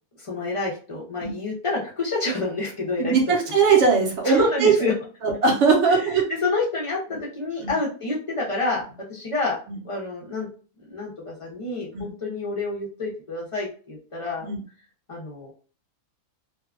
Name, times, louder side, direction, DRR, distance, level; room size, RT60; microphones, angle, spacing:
voice 1, 0.2-3.2 3.4-3.5 4.2-4.9 5.9-6.1 6.4-8.8 9.1-9.6 9.8-10.5 10.9-14.5 15.1-15.5, left 3 dB, 40° left, -4 dB, 0.4 m, -28 dB
voice 2, 3.0-4.7 5.2-6.2 7.6-7.7 11.9-12.1 14.4-14.6, right 5 dB, 60° right, 0 dB, 0.9 m, -20 dB
2.6 x 2.3 x 2.4 m, 0.38 s
omnidirectional pair, 1.5 m